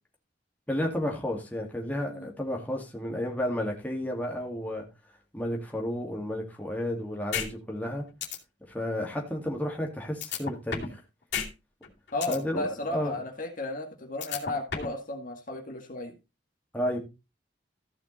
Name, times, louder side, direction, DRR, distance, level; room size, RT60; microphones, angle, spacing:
voice 1, 0.7-4.8 5.3-8.1 8.7-11.0 12.3-12.7 12.9-13.1 16.7-17.0, left 1 dB, 10° left, 0 dB, 2.4 m, -32 dB
sound 1, 7.3-7.5 7.8-7.9 8.2-8.4 10.2-11.0 11.3-11.5 11.8-12.4 14.2-15.0, left 7 dB, 70° left, 2.7 m, -31 dB
voice 2, 12.1-16.1, left 2 dB, 50° left, 3 dB, 1.9 m, -34 dB
14.5 x 5.8 x 4.1 m, 0.27 s
head